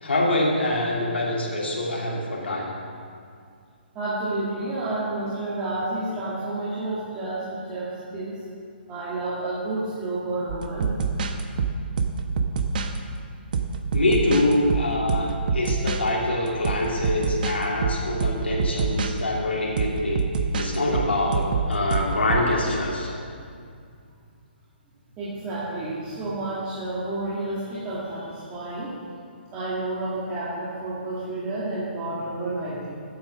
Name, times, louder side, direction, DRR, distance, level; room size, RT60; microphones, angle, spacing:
voice 1, 0.0-2.7 13.9-20.2 20.5-23.1, left 2 dB, 85° left, -3 dB, 2.9 m, -25 dB
voice 2, 3.9-8.4 8.9-10.9 18.2-18.3 18.5-18.6 19.2-19.3 25.2-29.0 29.5-33.0, right 2 dB, 20° right, -10 dB, 2.1 m, -30 dB
sound 1, 10.5-13.0 13.5-16.0 16.5-19.1 19.8-22.5, right 5 dB, 50° right, 0.9 m, -26 dB
9.3 x 8.8 x 6.3 m, 2.3 s
hypercardioid pair, 150°, 6 cm